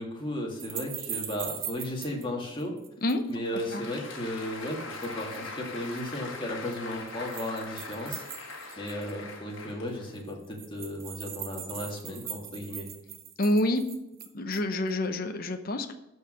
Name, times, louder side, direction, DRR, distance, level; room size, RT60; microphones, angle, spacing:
voice 1, 0.0-2.8 3.3-8.2 8.5-12.9, left 1 dB, 25° left, 0 dB, 2.0 m, -35 dB
sound 1, 0.6-2.2 2.6-3.3 4.7-5.5 5.8-6.1 6.7-9.2 9.6-9.7 9.9-10.0 10.2-14.7, right 10 dB, 45° right, 1.0 m, -40 dB
Applause, 3.2-10.4, left 3 dB, 60° left, 1.8 m, -42 dB
voice 2, 3.5-3.8 13.4-13.8 14.3-15.9, left 1 dB, 45° left, 7 dB, 0.8 m, -28 dB
12.0 x 4.8 x 6.3 m, 0.93 s
head